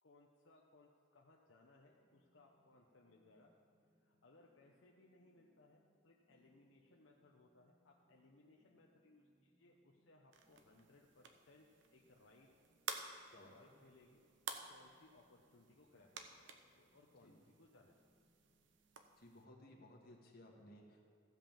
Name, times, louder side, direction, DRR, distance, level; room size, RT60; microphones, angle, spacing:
voice 1, 0.0-3.5 4.0-11.7 11.9-12.5 13.5-14.2 14.7-17.9, left 2 dB, 70° left, -1 dB, 0.9 m, -67 dB
sound 1, 1.7-19.1, right 1 dB, 5° right, 3.2 m, -78 dB
sound 2, 10.3-19.5, right 6 dB, 65° right, 0.8 m, -53 dB
voice 2, 13.3-13.7 17.2-17.4 19.2-21.2, left 1 dB, 50° left, 0 dB, 1.6 m, -60 dB
15.0 x 5.4 x 7.4 m, 2.4 s
head